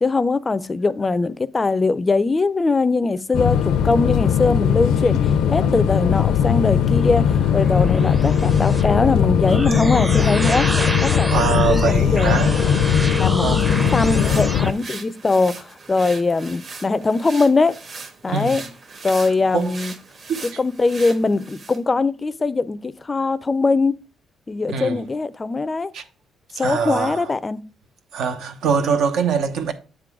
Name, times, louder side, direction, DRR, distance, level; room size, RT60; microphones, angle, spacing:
voice 1, 0.0-5.2 5.5-10.7 11.0-12.3 13.2-17.7 18.2-18.6 19.0-19.9 20.6-24.0 24.5-25.9 26.6-27.6, left 3 dB, 25° left, 0.4 m, -21 dB
sound 1, 3.3-14.7, left 8 dB, 80° left, 0.5 m, -19 dB
sound 2, 7.0-14.7, right 1 dB, 15° right, 0.6 m, -28 dB
voice 2, 11.3-12.6 13.4-14.0 18.3-18.6 19.2-19.8 20.3-20.6 24.7-25.0 25.9-26.0 26.5-27.3 28.1-29.7, right 6 dB, 80° right, 0.9 m, -24 dB
sound 3, 13.6-21.8, right 4 dB, 45° right, 1.2 m, -39 dB
8.2 x 3.8 x 4.7 m
cardioid pair, 90°, 0 cm